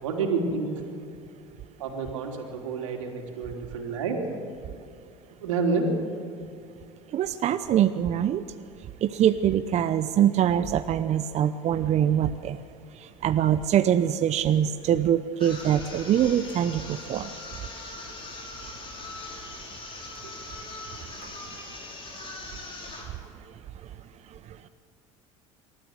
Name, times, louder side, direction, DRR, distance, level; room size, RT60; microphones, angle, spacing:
voice 1, 0.0-0.8 1.8-4.2 5.4-5.9 19.2-19.3 20.2-20.4, right 4 dB, 85° right, 1 dB, 3.5 m, -29 dB
voice 2, 7.1-8.4 9.0-12.6 13.2-17.3, right 10 dB, 45° right, 11 dB, 0.8 m, -23 dB
sound 1, 15.4-23.2, left 2 dB, 35° left, 6.1 m, -41 dB
27.0 x 13.5 x 8.0 m, 2.5 s
hypercardioid pair, 80°, 16 cm